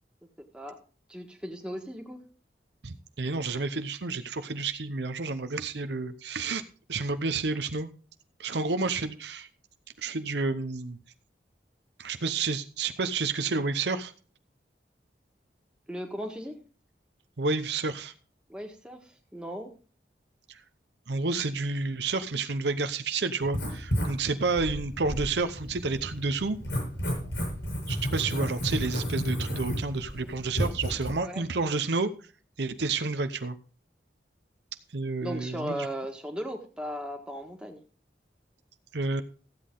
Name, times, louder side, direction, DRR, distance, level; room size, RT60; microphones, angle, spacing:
voice 1, 1.1-2.2 15.9-16.5 18.5-19.0 19.3-19.7 31.2-31.4 35.2-37.8, equal, 5° right, 1 dB, 1.6 m, -36 dB
voice 2, 2.8-6.6 6.9-7.9 8.4-9.5 10.0-11.0 12.0-14.1 17.4-18.1 20.5-20.6 21.1-26.6 27.9-32.1 32.6-33.6 34.9-35.9 38.9-39.2, right 3 dB, 75° right, 10 dB, 0.8 m, -30 dB
Writing, 23.4-31.1, equal, 80° left, 7.3 m, -32 dB
14.5 x 8.5 x 3.8 m, 0.38 s
head